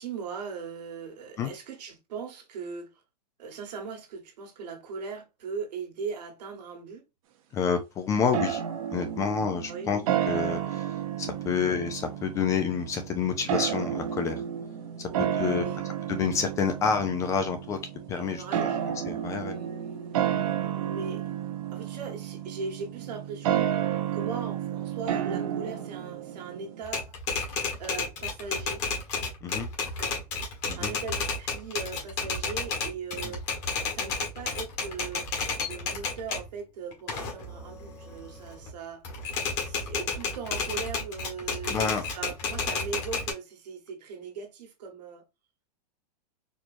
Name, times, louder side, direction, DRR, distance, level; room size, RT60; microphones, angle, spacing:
voice 1, 0.0-2.9 3.4-7.0 9.7-9.9 11.4-11.7 15.0-15.8 18.2-19.0 19.4-20.4 20.7-21.2 21.7-23.8 24.1-27.2 27.8-28.8 30.0-30.2 30.7-33.4 33.8-35.3 35.6-39.1 39.5-45.2, right 5 dB, 75° right, 1.6 m, -39 dB
voice 2, 7.5-8.6 8.9-10.0 10.3-14.4 15.0-15.1 15.4-15.7 16.1-17.8 18.1-18.7 19.1-19.5 29.4-29.7 30.7-30.9 33.2-33.3 41.7-42.0, left 6 dB, 15° left, 0.3 m, -28 dB
sound 1, 8.3-26.8, right 10 dB, 55° right, 0.9 m, -31 dB
Typewriter, 26.8-36.5 36.9-38.7 39.0-43.3, left 4 dB, 30° left, 1.4 m, -32 dB
4.3 x 3.0 x 2.6 m
supercardioid pair, 155°, 21 cm